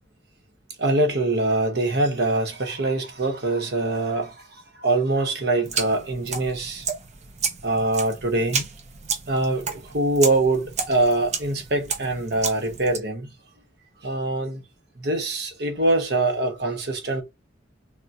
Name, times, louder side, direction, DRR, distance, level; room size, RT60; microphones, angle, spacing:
voice 1, 0.8-6.9 7.6-8.7 9.3-13.3 14.0-14.6 15.0-17.2, right 2 dB, 60° right, 1.0 m, -24 dB
sound 1, 5.6-13.0, right 5 dB, 35° right, 0.6 m, -32 dB
3.7 x 2.2 x 2.7 m
head